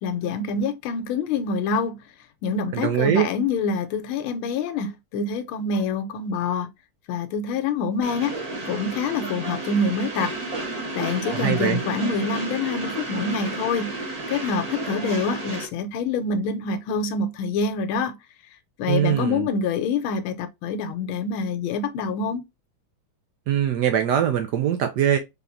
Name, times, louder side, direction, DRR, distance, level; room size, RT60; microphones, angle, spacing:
voice 1, 0.0-2.0 2.4-6.7 7.1-8.4 8.7-10.3 11.0-14.0 14.3-18.2 18.8-22.4, left 4 dB, 85° left, 1.5 m, -26 dB
voice 2, 2.7-3.3 11.4-11.8 18.9-19.5 23.5-25.2, right 10 dB, 75° right, 1.0 m, -22 dB
Train, 8.0-15.7, right 2 dB, 30° right, 0.7 m, -32 dB
3.5 x 3.4 x 2.5 m
omnidirectional pair, 2.2 m